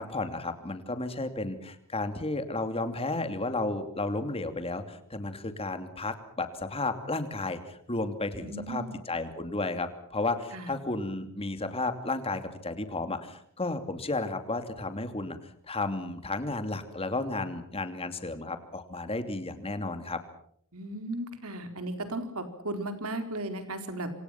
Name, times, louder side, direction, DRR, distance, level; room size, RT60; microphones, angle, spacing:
voice 1, 0.0-15.4 15.7-20.2, left 2 dB, 25° left, 8 dB, 2.7 m, -33 dB
voice 2, 8.4-8.9 10.5-10.7 20.7-24.1, right 1 dB, 70° right, 7 dB, 4.3 m, -36 dB
28.0 x 26.5 x 5.9 m, 0.66 s
head